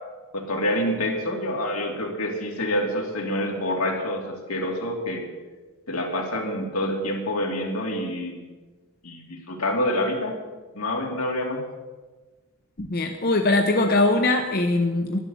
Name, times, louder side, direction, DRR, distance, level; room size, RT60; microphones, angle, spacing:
voice 1, 0.3-5.2 5.9-8.4 9.0-10.3 10.7-11.6, left 1 dB, 80° left, 0 dB, 2.8 m, -27 dB
voice 2, 12.8-15.2, left 2 dB, 45° left, 4 dB, 0.9 m, -21 dB
11.5 x 11.0 x 7.1 m, 1.3 s
head